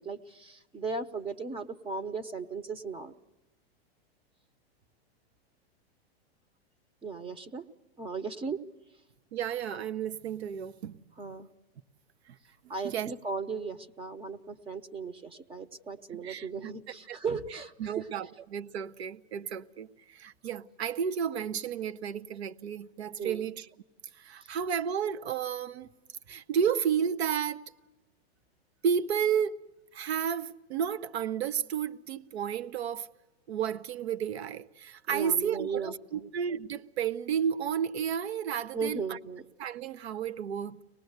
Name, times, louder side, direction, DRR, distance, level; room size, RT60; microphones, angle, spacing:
voice 1, 0.0-3.2 7.0-7.6 8.0-8.6 11.2-11.5 12.7-18.1 23.2-23.4 35.1-36.3 38.7-39.4, right 4 dB, 15° right, 0.8 m, -36 dB
voice 2, 9.3-11.0 12.3-12.4 12.8-13.1 16.1-16.7 17.1-17.2 17.5-23.7 24.2-25.9 26.3-27.6 28.8-29.6 29.9-33.1 33.5-39.2 39.6-40.8, right 8 dB, 85° right, 0.8 m, -32 dB
24.5 x 19.0 x 8.0 m
hypercardioid pair, 120°, 31 cm